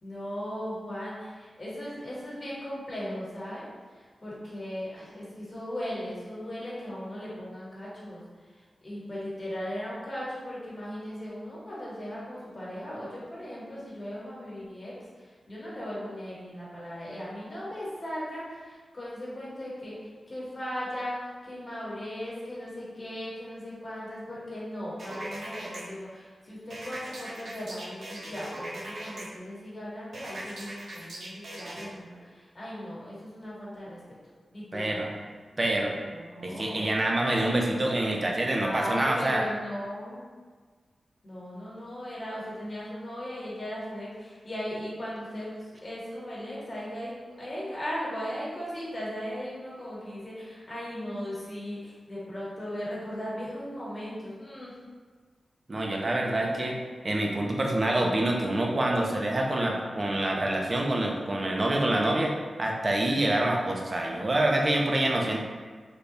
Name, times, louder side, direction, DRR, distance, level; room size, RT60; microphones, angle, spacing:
voice 1, 0.0-34.2 34.5-35.0 36.1-36.9 38.6-40.2 41.2-47.1 47.4-54.8, equal, 35° left, -7 dB, 1.3 m, -38 dB
sound 1, 25.0-25.8 26.7-29.2 30.1-31.9, right 1 dB, 80° right, 0.8 m, -40 dB
voice 2, 34.7-35.1 35.6-35.9 36.4-39.4 55.7-56.8 57.0-62.3 62.6-65.4, right 1 dB, 35° right, 0 dB, 0.5 m, -26 dB
3.4 x 2.3 x 3.9 m, 1.5 s
wide cardioid pair, 105°, 0 cm